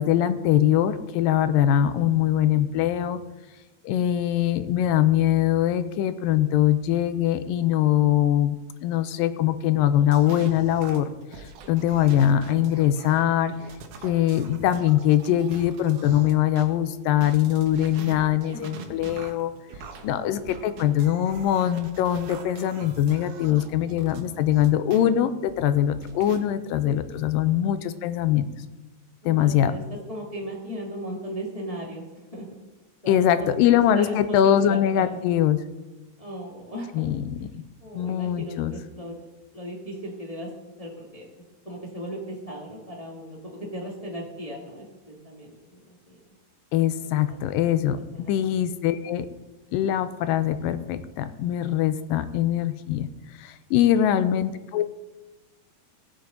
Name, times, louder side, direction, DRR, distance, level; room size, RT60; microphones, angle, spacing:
voice 1, 0.0-3.2 3.8-8.6 8.8-11.1 11.7-13.5 14.0-19.5 20.0-28.5 29.3-29.7 33.1-35.6 37.0-37.6 37.9-38.7 46.7-49.3 49.7-53.1 53.4-54.9, left 11 dB, 85° left, 11 dB, 2.3 m, -22 dB
voice 2, 1.8-2.4 4.0-4.4 18.1-18.9 20.0-20.8 23.5-23.6 23.8-24.2 27.4-27.7 29.2-32.5 33.0-35.2 36.2-37.1 37.4-37.5 37.8-39.1 39.5-40.5 40.8-41.3 41.6-45.8 46.1-46.2 47.3-47.6 47.9-48.4, equal, 35° left, -2 dB, 0.6 m, -37 dB
sound 1, 9.8-16.7 17.1-25.0 25.5-26.4, right 4 dB, 70° right, 2.4 m, -43 dB
18.5 x 7.0 x 3.9 m, 1.1 s
omnidirectional pair, 4.0 m